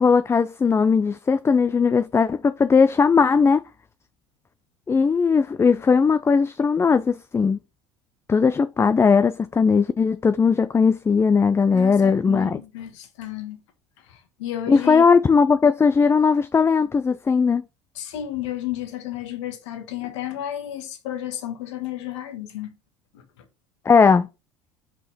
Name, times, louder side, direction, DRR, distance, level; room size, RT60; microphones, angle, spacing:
voice 1, 0.0-3.6 4.9-7.6 8.3-12.6 14.7-17.6 23.9-24.3, left 5 dB, 15° left, 0.4 m, -18 dB
voice 2, 11.7-13.6 14.0-15.1 17.9-22.7 23.1-23.5, left 12 dB, 75° left, 1.5 m, -32 dB
5.4 x 5.1 x 4.1 m
hypercardioid pair, 75°, 15 cm